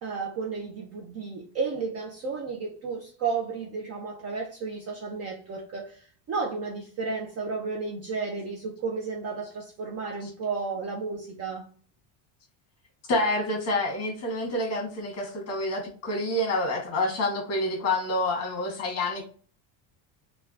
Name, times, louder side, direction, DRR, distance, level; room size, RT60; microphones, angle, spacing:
voice 1, 0.0-11.7, right 4 dB, 35° right, 0.4 m, -33 dB
voice 2, 13.1-19.2, left 1 dB, 30° left, 1.3 m, -28 dB
3.2 x 2.3 x 2.4 m
cardioid pair, 150°, 49 cm